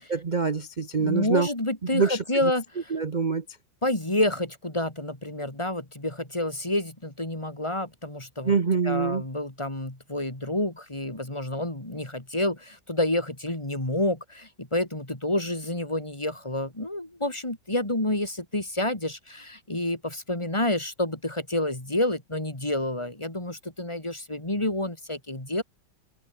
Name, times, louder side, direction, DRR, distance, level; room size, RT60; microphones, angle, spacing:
voice 1, 0.1-1.5 1.8-2.5 2.9-3.4 8.4-9.2, right 5 dB, 35° right, 0.8 m, -25 dB
voice 2, 1.0-2.9 3.8-8.5 8.8-25.6, left 1 dB, 15° left, 3.1 m, -29 dB
omnidirectional pair, 2.1 m